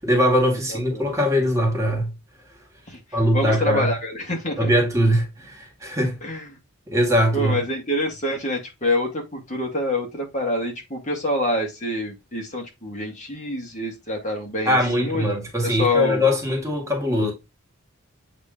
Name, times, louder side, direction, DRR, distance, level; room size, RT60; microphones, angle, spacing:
voice 1, 0.0-2.1 3.1-3.9 4.6-6.2 6.9-7.6 14.7-17.3, equal, 15° right, 1.8 m, -21 dB
voice 2, 0.7-1.1 2.9-4.7 6.2-6.5 7.3-15.2 15.6-16.2, left 1 dB, 35° left, 2.0 m, -26 dB
8.0 x 3.1 x 3.7 m
head